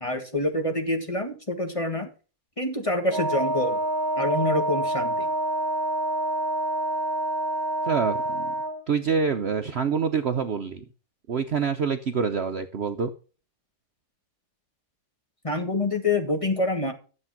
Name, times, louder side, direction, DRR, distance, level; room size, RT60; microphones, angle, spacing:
voice 1, 0.0-2.1 2.6-3.8 4.2-5.3 15.4-16.9, left 2 dB, 20° left, 4 dB, 1.8 m, -26 dB
Wind instrument woodwind instrument, 3.1-8.8, right 1 dB, 15° right, 1.4 m, -27 dB
voice 2, 7.8-8.5 8.9-10.8 11.3-13.1, right 6 dB, 55° right, 7 dB, 0.9 m, -26 dB
12.5 x 7.4 x 5.9 m, 0.36 s
omnidirectional pair, 1.6 m